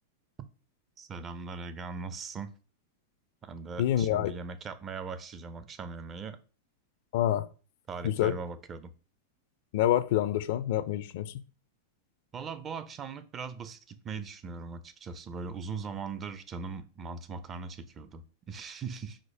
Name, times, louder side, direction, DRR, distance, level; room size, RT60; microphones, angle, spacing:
voice 1, 1.0-2.5 3.4-6.4 7.9-8.9 12.3-19.2, right 5 dB, 30° right, 0.5 m, -40 dB
voice 2, 3.8-4.3 7.1-7.5 8.0-8.4 9.7-11.3, left 12 dB, 65° left, 0.4 m, -27 dB
4.9 x 2.0 x 4.3 m
hypercardioid pair, 110°, 0 cm